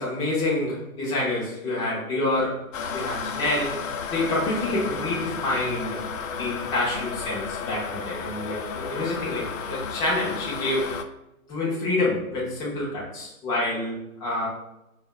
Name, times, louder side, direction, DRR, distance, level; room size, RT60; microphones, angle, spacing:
voice 1, 0.0-2.6 2.9-3.8 4.1-6.0 6.4-10.9 11.5-14.5, left 2 dB, 10° left, -6 dB, 0.6 m, -27 dB
sound 1, 2.7-11.0, left 6 dB, 65° left, 0.5 m, -33 dB
4.9 x 2.4 x 2.3 m, 0.90 s
hypercardioid pair, 140°, 42 cm